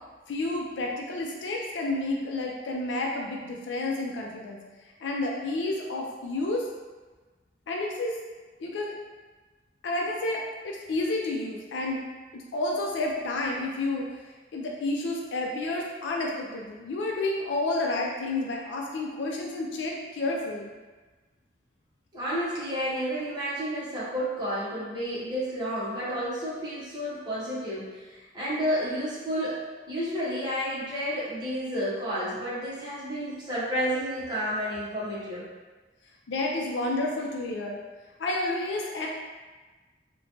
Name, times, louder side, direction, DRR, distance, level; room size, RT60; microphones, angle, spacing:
voice 1, 0.3-4.6 5.0-6.7 7.7-8.2 8.6-8.9 9.8-12.0 12.3-14.1 14.5-20.7 36.3-37.8 38.2-39.1, left 2 dB, 85° left, 0 dB, 0.4 m, -30 dB
voice 2, 22.1-35.4, equal, 25° right, -9 dB, 0.8 m, -31 dB
2.9 x 2.1 x 2.8 m, 1.3 s
head